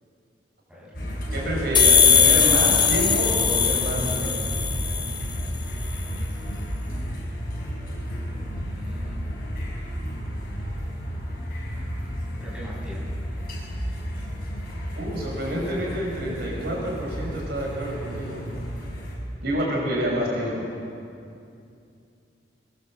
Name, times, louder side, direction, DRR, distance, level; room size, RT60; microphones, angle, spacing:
sound 1, 0.9-19.1, equal, 55° left, 6.2 m, -32 dB
voice 1, 1.3-4.4 15.0-18.4 19.4-20.7, equal, 65° right, -2 dB, 6.1 m, -28 dB
sound 2, 1.7-5.3, left 7 dB, 25° left, 0.9 m, -19 dB
voice 2, 8.7-9.2 12.4-13.1, equal, 5° right, -6 dB, 7.8 m, -41 dB
22.0 x 21.5 x 7.7 m, 2.5 s
head